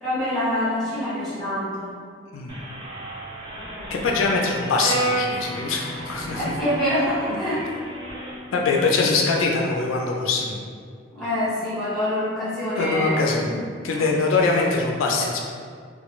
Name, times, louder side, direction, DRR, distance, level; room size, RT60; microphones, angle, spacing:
voice 1, 0.0-2.0 6.3-7.6 11.1-13.6 14.0-14.1, left 1 dB, ahead, -11 dB, 0.8 m, -26 dB
sound 1, 2.5-8.4, right 1 dB, 25° right, 0.5 m, -37 dB
voice 2, 3.9-6.4 8.5-10.6 12.7-13.4 13.8-15.4, left 3 dB, 85° left, 0 dB, 0.4 m, -23 dB
Brass instrument, 4.8-9.0, right 2 dB, 85° right, 0.4 m, -32 dB
2.4 x 2.3 x 3.0 m, 2.1 s
head